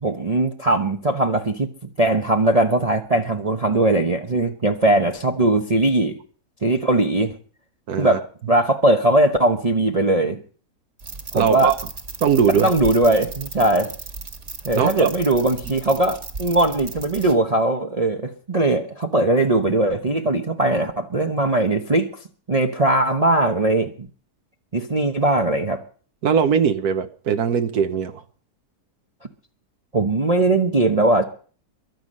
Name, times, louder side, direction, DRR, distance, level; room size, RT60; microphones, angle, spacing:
voice 1, 0.0-1.7 2.0-6.2 6.6-7.4 8.0-8.2 8.5-10.4 11.3-11.7 12.6-13.9 14.6-22.1 22.5-24.1 24.7-25.8 29.9-31.2, right 2 dB, 30° right, 0.9 m, -20 dB
voice 2, 7.9-8.2 11.3-11.8 12.2-12.7 14.7-15.1 26.2-28.2, right 7 dB, 70° right, 1.5 m, -20 dB
sound 1, 11.0-17.3, right 3 dB, 45° right, 2.1 m, -36 dB
23.0 x 8.0 x 5.4 m
omnidirectional pair, 1.7 m